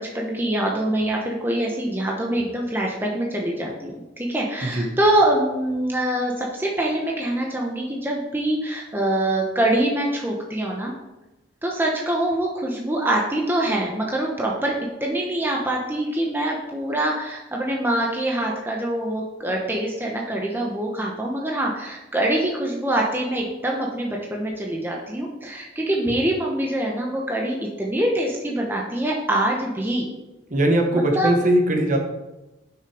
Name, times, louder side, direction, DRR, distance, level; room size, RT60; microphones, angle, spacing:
voice 1, 0.0-10.9 11.6-14.7 15.0-30.1 30.9-31.4, right 1 dB, 10° right, -1 dB, 0.8 m, -24 dB
voice 2, 4.6-4.9 30.5-32.0, right 1 dB, 40° right, 3 dB, 1.1 m, -20 dB
6.6 x 5.9 x 4.8 m, 1.0 s
head